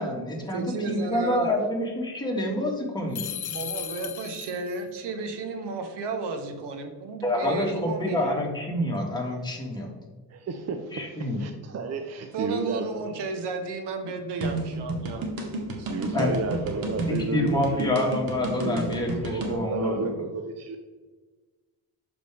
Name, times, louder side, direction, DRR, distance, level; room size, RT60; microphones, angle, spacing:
voice 1, 0.0-3.2 7.2-9.9 10.9-11.4 16.1-16.3 17.1-20.0, left 1 dB, 10° left, 1.6 m, -27 dB
voice 2, 0.5-1.5 3.5-8.4 12.3-15.3 15.8-15.9, right 3 dB, 80° right, 1.1 m, -33 dB
sound 1, 3.1-4.8, left 9 dB, 45° left, 0.7 m, -35 dB
voice 3, 10.3-13.2 15.9-18.1 18.5-20.8, right 4 dB, 40° right, 0.6 m, -32 dB
sound 2, 14.4-19.6, right 2 dB, 60° right, 1.3 m, -31 dB
6.6 x 4.9 x 3.4 m
cardioid pair, 90°, 40 cm